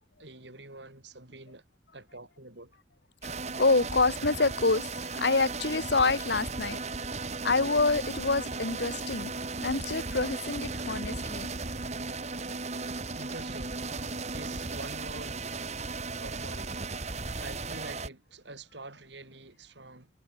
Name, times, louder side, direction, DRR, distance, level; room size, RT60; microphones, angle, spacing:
voice 1, 0.2-1.6 1.9-2.7 13.1-15.4 16.2-20.1, right 2 dB, 65° right, 5.8 m, -46 dB
sound 1, 3.2-18.1, right 3 dB, 35° right, 2.2 m, -36 dB
voice 2, 3.6-6.8 7.4-9.3 9.6-11.5, left 3 dB, 60° left, 1.2 m, -27 dB
head